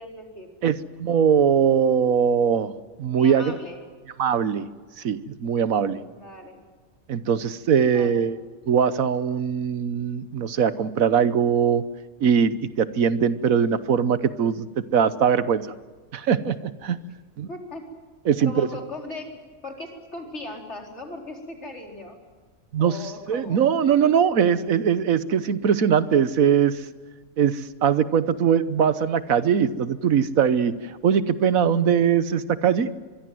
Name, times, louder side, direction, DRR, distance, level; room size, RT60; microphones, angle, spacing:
voice 1, 0.0-0.5 3.1-3.8 6.1-6.6 7.9-8.2 17.5-17.8 18.4-19.3 19.6-22.2 22.8-23.6, left 2 dB, 50° left, 2 dB, 4.7 m, -38 dB
voice 2, 0.6-3.6 4.2-4.7 5.0-6.0 7.1-8.4 8.7-11.8 12.2-15.7 16.1-17.0 17.4-17.5 18.3-18.7 22.7-23.0 23.3-26.8 27.4-30.7 31.0-32.9, right 7 dB, 75° right, 14 dB, 1.4 m, -21 dB
25.0 x 22.0 x 7.8 m, 1.4 s
omnidirectional pair, 1.5 m